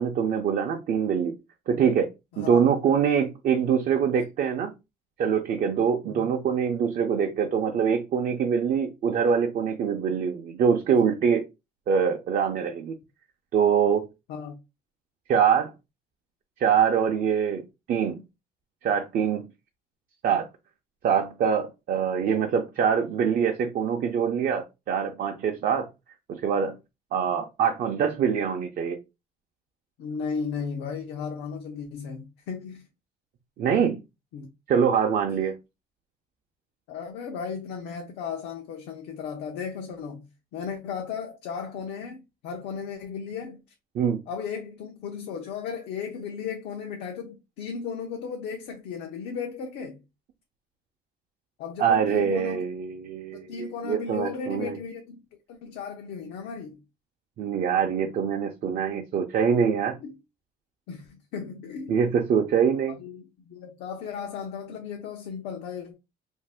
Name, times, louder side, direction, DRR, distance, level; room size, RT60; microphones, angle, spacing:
voice 1, 0.0-1.3 1.7-2.1 2.4-4.7 5.2-11.4 11.9-12.9 13.5-14.1 15.3-15.7 16.6-18.2 18.8-19.4 20.2-20.5 21.0-25.9 26.3-26.8 27.1-29.0 33.6-34.0 34.7-35.6 44.0-44.2 51.8-53.5 53.8-54.8 57.4-60.0 61.9-63.0, right 7 dB, 55° right, 0.5 m, -24 dB
voice 2, 30.0-32.9 34.3-34.5 36.9-43.6 44.3-50.0 51.6-52.7 53.3-55.2 55.5-56.8 60.0-60.2 60.9-62.0 62.9-65.9, left 6 dB, 85° left, 0.6 m, -35 dB
2.6 x 2.4 x 3.4 m
cardioid pair, 110°, 17 cm